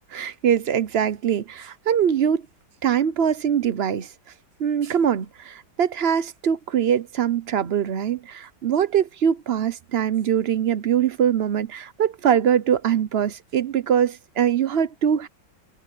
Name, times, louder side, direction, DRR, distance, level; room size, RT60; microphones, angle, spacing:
voice 1, 0.1-2.4 2.8-4.1 4.6-15.3, right 8 dB, 65° right, 0.6 m, -22 dB
omnidirectional pair, 2.0 m